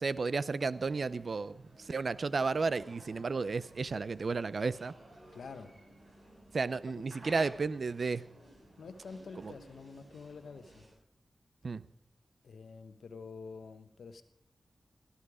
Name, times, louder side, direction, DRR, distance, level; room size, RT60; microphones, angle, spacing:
voice 1, 0.0-4.9 6.5-8.3 9.4-9.5 11.6-11.8, right 4 dB, 65° right, 0.6 m, -33 dB
sound 1, 0.7-10.9, right 1 dB, 50° right, 7.4 m, -56 dB
voice 2, 5.3-5.7 7.1-7.4 8.8-10.9 12.4-14.2, left 4 dB, 90° left, 1.1 m, -48 dB
17.5 x 13.0 x 4.9 m
cardioid pair, 45°, 0 cm